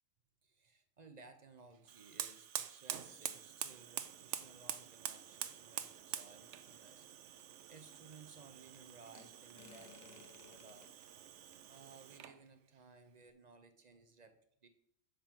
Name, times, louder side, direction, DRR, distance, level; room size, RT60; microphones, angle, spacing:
voice 1, 0.4-7.1 7.3-10.9 11.7-14.4 14.6-14.7, right 4 dB, 45° right, 8 dB, 0.6 m, -59 dB
Fire, 1.8-12.4, right 10 dB, 70° right, 0.9 m, -47 dB
sound 1, 6.4-7.4 9.1-10.9 11.5-11.6, left 2 dB, 15° left, 1.0 m, -60 dB
7.2 x 5.2 x 5.7 m, 0.72 s
omnidirectional pair, 1.3 m